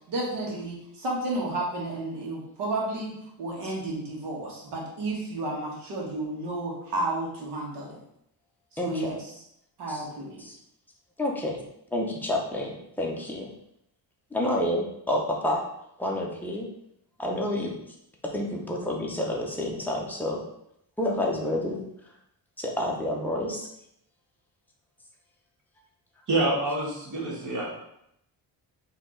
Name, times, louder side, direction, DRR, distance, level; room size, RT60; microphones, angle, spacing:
voice 1, 0.1-8.0 8.7-9.3 9.8-10.4, right 2 dB, 75° right, -3 dB, 1.5 m, -32 dB
voice 2, 8.8-9.1 9.9-10.0 10.4-10.6 11.2-11.6 11.9-13.5 14.3-15.6 16.0-16.7 17.2-17.7 18.3-20.4 21.0-21.8 22.6-23.7, left 1 dB, 5° left, -1 dB, 0.6 m, -29 dB
voice 3, 26.3-27.8, right 2 dB, 45° right, -2 dB, 1.3 m, -27 dB
4.3 x 2.9 x 3.7 m, 0.76 s
wide cardioid pair, 175°, 42 cm